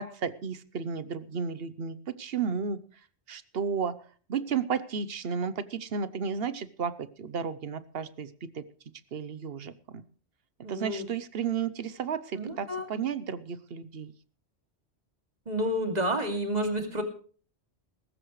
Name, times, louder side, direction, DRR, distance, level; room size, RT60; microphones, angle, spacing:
voice 1, 0.0-2.8 3.3-4.0 4.3-8.6 9.1-10.0 10.7-14.1, right 6 dB, 65° right, 15 dB, 1.0 m, -33 dB
voice 2, 10.6-11.0 12.3-12.9 15.5-17.0, equal, 40° right, 4 dB, 2.6 m, -30 dB
18.5 x 15.0 x 3.2 m, 0.41 s
omnidirectional pair, 1.1 m